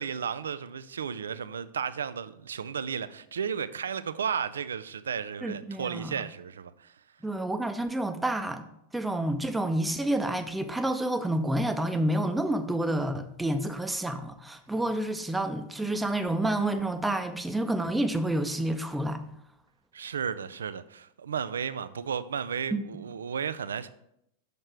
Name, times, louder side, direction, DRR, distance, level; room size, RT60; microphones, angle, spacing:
voice 1, 0.0-6.9 19.9-23.9, right 7 dB, 70° right, 0.4 m, -34 dB
voice 2, 5.4-6.1 7.2-8.6 8.9-19.2 22.7-22.8, right 1 dB, 5° right, 0.7 m, -29 dB
6.6 x 6.4 x 4.5 m
figure-of-eight pair, 90°, 0 cm